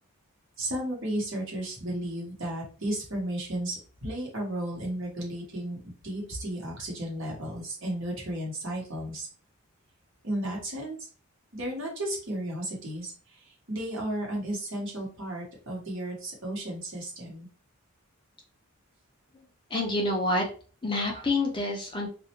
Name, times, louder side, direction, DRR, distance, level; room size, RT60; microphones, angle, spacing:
voice 1, 0.6-9.3 10.2-11.1 11.5-17.5, right 1 dB, 60° right, -2 dB, 1.1 m, -34 dB
voice 2, 19.7-20.4 20.8-22.1, left 2 dB, 20° left, 0 dB, 0.5 m, -27 dB
2.4 x 2.1 x 2.8 m, 0.39 s
head